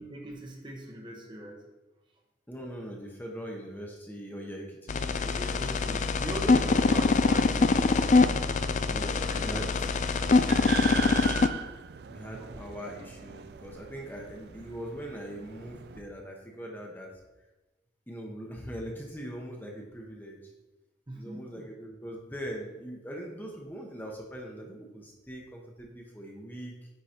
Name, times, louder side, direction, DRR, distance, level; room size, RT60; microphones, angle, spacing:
voice 1, 0.0-1.6 5.2-8.2 9.3-9.6 12.0-12.7 21.1-21.7, right 1 dB, 25° right, 1 dB, 0.9 m, -41 dB
voice 2, 2.5-4.9 5.9-6.0 6.5-6.7 8.9-9.7 12.1-17.1 18.1-20.5 21.1-26.9, equal, 10° left, 0 dB, 0.9 m, -41 dB
sound 1, 4.9-11.5, left 4 dB, 40° left, 0.3 m, -24 dB
sound 2, 9.8-16.0, right 7 dB, 60° right, 0.3 m, -40 dB
9.5 x 3.9 x 4.3 m, 1.1 s
head